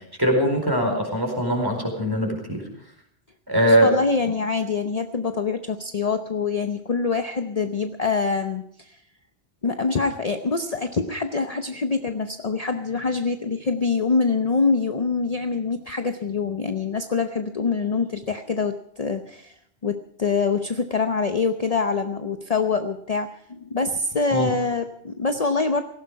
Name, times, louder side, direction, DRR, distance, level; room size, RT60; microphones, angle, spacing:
voice 1, 0.2-2.6 3.5-3.9 24.3-24.5, equal, 20° right, 2 dB, 4.7 m, -21 dB
voice 2, 3.7-9.0 9.6-25.8, left 4 dB, 40° left, 7 dB, 0.9 m, -25 dB
18.0 x 15.5 x 4.7 m, 0.70 s
omnidirectional pair, 1.1 m